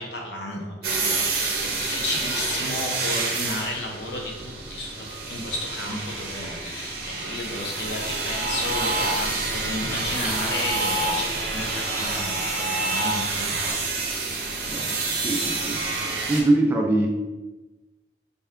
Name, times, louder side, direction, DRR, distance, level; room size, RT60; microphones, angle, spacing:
voice 1, 0.0-14.1, left 1 dB, 70° left, 0 dB, 0.8 m, -33 dB
sound 1, 0.8-16.4, right 3 dB, 55° right, 0.6 m, -29 dB
sound 2, 7.5-13.7, right 1 dB, 35° right, 0.9 m, -30 dB
voice 2, 15.2-15.8 16.3-17.1, right 2 dB, 10° right, 1 dB, 0.3 m, -22 dB
4.3 x 2.3 x 3.5 m, 1.1 s
head